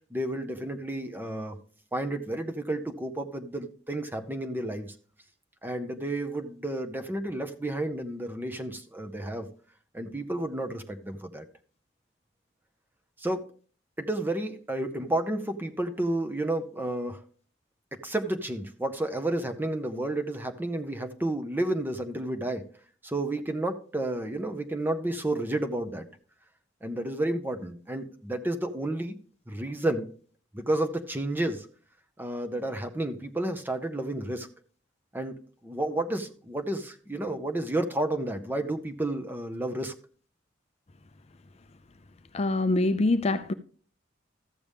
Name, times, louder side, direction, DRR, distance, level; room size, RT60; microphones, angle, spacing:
voice 1, 0.1-1.6 1.9-4.9 5.6-9.5 9.9-11.4 13.2-13.5 14.0-17.2 17.9-22.6 23.0-26.1 26.8-29.2 29.5-30.1 30.5-31.7 32.2-34.5 35.1-39.9, right 1 dB, 10° right, 0.8 m, -31 dB
voice 2, 42.3-43.5, left 2 dB, 35° left, 0.5 m, -24 dB
13.5 x 7.0 x 3.5 m
head